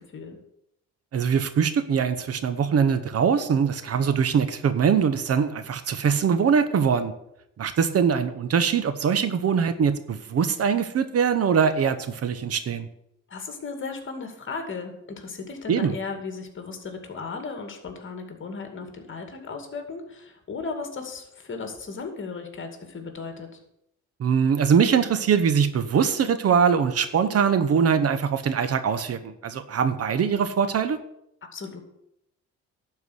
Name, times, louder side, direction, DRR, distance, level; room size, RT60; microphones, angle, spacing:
voice 1, 1.1-7.1 7.6-12.9 15.7-15.9 24.2-31.0, right 7 dB, 50° right, 12 dB, 0.9 m, -22 dB
voice 2, 13.3-23.5 31.5-31.8, left 4 dB, 40° left, 5 dB, 2.4 m, -36 dB
11.5 x 4.7 x 8.0 m, 0.79 s
cardioid pair, 90°, 30 cm